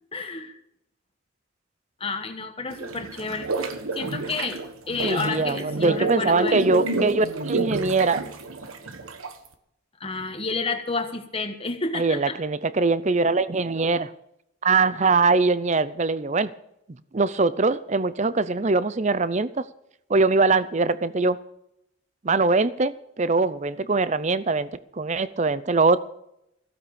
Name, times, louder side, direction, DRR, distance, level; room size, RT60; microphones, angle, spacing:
voice 1, 0.1-0.5 2.0-6.6 10.0-12.4, left 3 dB, 25° left, 6 dB, 1.3 m, -30 dB
sound 1, 2.7-9.5, right 3 dB, 80° right, 1.3 m, -29 dB
voice 2, 5.0-8.2 11.9-14.1 14.6-16.5 17.1-19.6 20.1-21.4 22.2-24.7 25.0-26.0, right 3 dB, 35° right, 16 dB, 0.5 m, -22 dB
15.5 x 8.5 x 7.0 m, 0.80 s
head